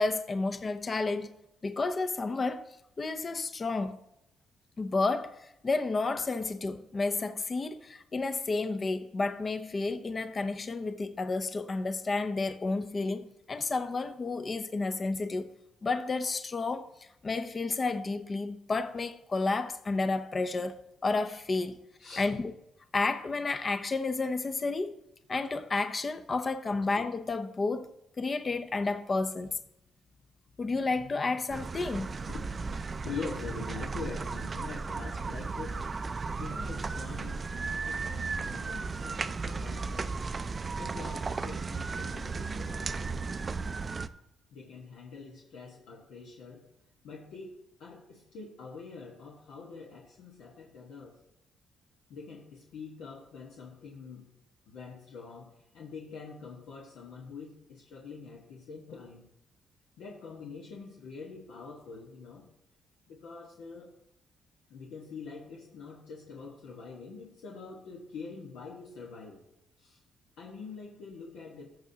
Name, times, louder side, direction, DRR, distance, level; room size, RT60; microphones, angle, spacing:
voice 1, 0.0-1.3 1.6-2.7 3.0-4.0 4.8-15.5 15.8-20.8 21.0-21.8 22.2-22.5 22.9-25.0 25.3-27.9 28.2-29.6 30.6-32.2, left 3 dB, 35° left, 0.6 m, -31 dB
voice 2, 22.0-22.3 32.3-35.8 36.0-40.2 40.7-43.3 44.5-46.7 47.0-47.5 47.8-51.2 52.1-54.3 54.7-59.3 60.0-62.5 63.1-63.9 64.7-69.4 69.8-70.0 70.4-71.7, left 4 dB, 85° left, 1.4 m, -45 dB
sound 1, 31.5-44.1, right 4 dB, 35° right, 0.4 m, -35 dB
14.0 x 6.2 x 2.8 m
cardioid pair, 90°, 0 cm